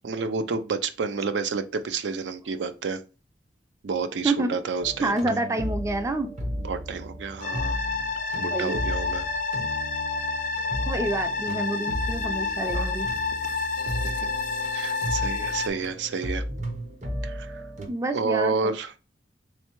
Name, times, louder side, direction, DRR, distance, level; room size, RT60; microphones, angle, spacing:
voice 1, 0.0-3.0 3.8-5.4 6.6-7.8 8.4-9.3 14.0-14.2 14.7-16.4 17.2-17.6 18.1-19.0, right 4 dB, 80° right, 0.4 m, -29 dB
voice 2, 4.2-4.5 5.0-6.3 8.3-8.8 10.8-13.1 17.9-18.7, right 2 dB, 15° right, 0.3 m, -28 dB
sound 1, 4.8-17.9, equal, 40° right, 0.7 m, -34 dB
sound 2, 7.4-15.7, left 4 dB, 50° left, 0.4 m, -29 dB
3.5 x 3.2 x 2.9 m
head